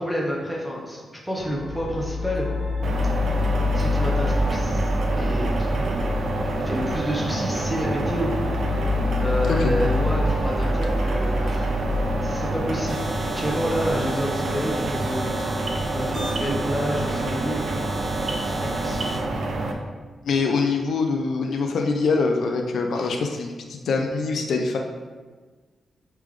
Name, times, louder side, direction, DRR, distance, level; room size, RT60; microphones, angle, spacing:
voice 1, 0.0-2.5 3.7-6.1 6.6-8.3 9.2-11.7 12.2-13.1 13.3-15.3 15.8-19.2, equal, ahead, -3 dB, 0.9 m, -29 dB
sound 1, 1.4-13.1, left 2 dB, 45° left, 1.5 m, -26 dB
sound 2, 2.8-19.7, right 2 dB, 60° right, 0.7 m, -27 dB
sound 3, 12.9-19.2, right 1 dB, 35° right, 1.1 m, -36 dB
voice 2, 20.2-24.8, left 4 dB, 65° left, 3 dB, 0.6 m, -24 dB
9.8 x 3.4 x 3.8 m, 1.4 s
wide cardioid pair, 175°, 0 cm